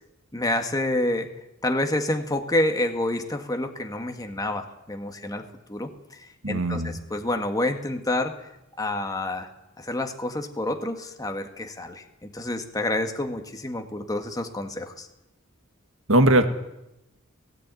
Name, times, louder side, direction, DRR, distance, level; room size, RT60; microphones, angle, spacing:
voice 1, 0.3-1.3 1.6-5.4 5.7-8.5 8.8-9.5 9.8-15.1, left 1 dB, 15° left, 5 dB, 1.6 m, -28 dB
voice 2, 6.4-7.0 16.1-16.5, right 1 dB, 65° right, 8 dB, 2.0 m, -19 dB
18.0 x 17.0 x 9.5 m, 0.91 s
head